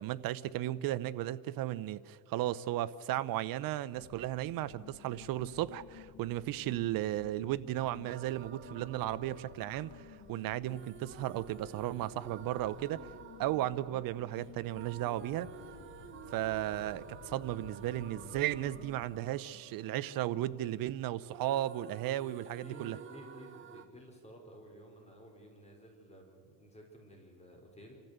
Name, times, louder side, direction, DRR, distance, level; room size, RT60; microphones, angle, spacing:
voice 1, 0.0-13.1 13.4-15.5 16.3-23.0, right 14 dB, 55° right, 0.8 m, -35 dB
sound 1, 3.9-19.3, left 9 dB, 45° left, 1.1 m, -54 dB
sound 2, 8.0-21.0 21.3-23.9, right 8 dB, 30° right, 1.1 m, -52 dB
voice 2, 22.5-28.0, equal, 15° left, 4.3 m, -54 dB
27.0 x 14.5 x 8.0 m
cardioid pair, 130°, 41 cm